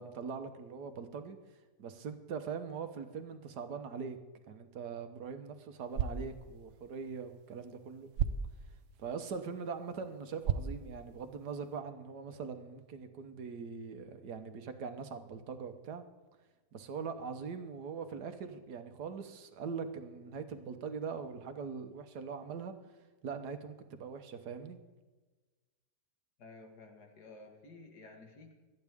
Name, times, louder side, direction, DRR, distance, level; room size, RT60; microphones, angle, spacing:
voice 1, 0.0-1.4 1.8-4.2 4.5-8.1 9.0-16.0 16.7-22.7 23.2-24.8, right 5 dB, 85° right, 8 dB, 1.6 m, -42 dB
sound 1, 5.8-11.8, right 7 dB, 60° right, 1.0 m, -39 dB
voice 2, 26.4-28.5, left 3 dB, 80° left, 3 dB, 2.4 m, -53 dB
25.5 x 9.5 x 3.6 m, 1.3 s
omnidirectional pair, 1.7 m